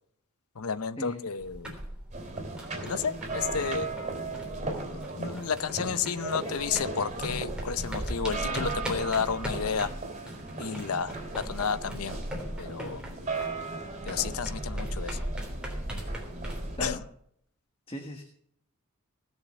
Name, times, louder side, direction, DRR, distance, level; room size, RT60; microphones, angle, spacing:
voice 1, 0.6-1.8 2.8-3.9 5.2-9.9 10.6-12.2 12.6-13.0 14.1-15.2 16.8-17.0, left 6 dB, 90° left, 16 dB, 0.7 m, -31 dB
sound 1, 1.4-6.3 6.6-16.9, equal, 5° right, 3.4 m, -38 dB
sound 2, 2.1-16.8, right 3 dB, 30° right, 3.8 m, -37 dB
voice 2, 17.9-18.2, left 2 dB, 25° left, 4 dB, 1.4 m, -36 dB
18.5 x 6.7 x 7.0 m, 0.67 s
head